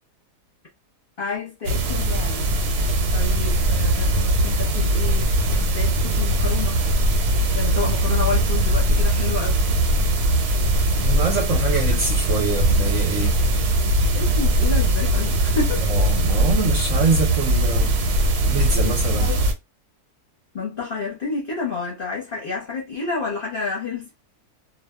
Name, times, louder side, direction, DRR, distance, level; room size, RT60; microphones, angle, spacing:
voice 1, 1.2-2.5 3.1-6.8 7.5-9.6 14.1-15.9 19.2-19.4 20.5-24.1, left 4 dB, 45° left, 0.7 m, -30 dB
sound 1, 1.6-19.5, right 1 dB, 85° right, 1.2 m, -20 dB
voice 2, 11.0-13.3 15.9-17.9 18.5-19.3, right 4 dB, 60° right, 0.9 m, -25 dB
2.6 x 2.1 x 2.2 m
omnidirectional pair, 1.7 m